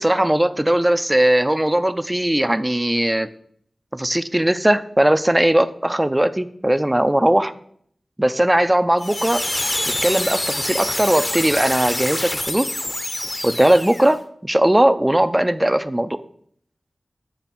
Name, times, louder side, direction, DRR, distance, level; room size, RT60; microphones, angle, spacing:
voice 1, 0.0-3.3 3.9-7.5 8.2-9.4 10.0-12.7 13.4-16.2, right 1 dB, 15° right, 12 dB, 0.4 m, -18 dB
sound 1, 9.0-14.2, left 1 dB, 30° left, 0.7 m, -26 dB
8.3 x 3.4 x 6.0 m, 0.64 s
wide cardioid pair, 55°, 0 cm